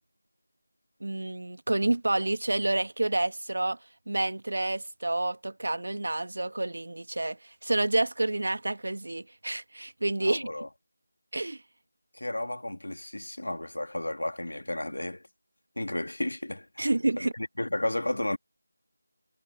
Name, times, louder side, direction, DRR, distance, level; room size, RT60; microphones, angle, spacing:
voice 1, 1.0-3.8 4.1-10.5 11.3-11.6 16.8-17.3, right 2 dB, 70° right, 1.5 m, -29 dB
voice 2, 10.2-10.7 12.1-15.3 15.8-16.9 17.2-18.4, left 1 dB, 90° left, 2.5 m, -33 dB
figure-of-eight pair, 170°, 0 cm